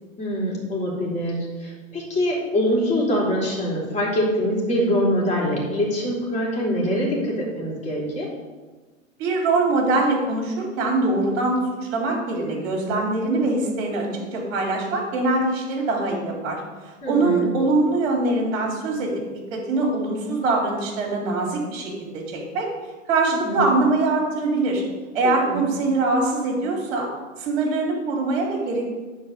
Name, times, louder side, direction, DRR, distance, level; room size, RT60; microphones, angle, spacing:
voice 1, 0.2-8.3 17.0-17.5 23.3-23.6 25.2-25.7, equal, 15° left, -4 dB, 3.4 m, -24 dB
voice 2, 9.2-11.6 11.9-16.6 17.0-22.7 23.1-24.8 25.1-27.1 27.4-28.9, right 2 dB, 50° right, 0 dB, 3.4 m, -23 dB
9.8 x 4.8 x 6.7 m, 1.3 s
hypercardioid pair, 110°, 41 cm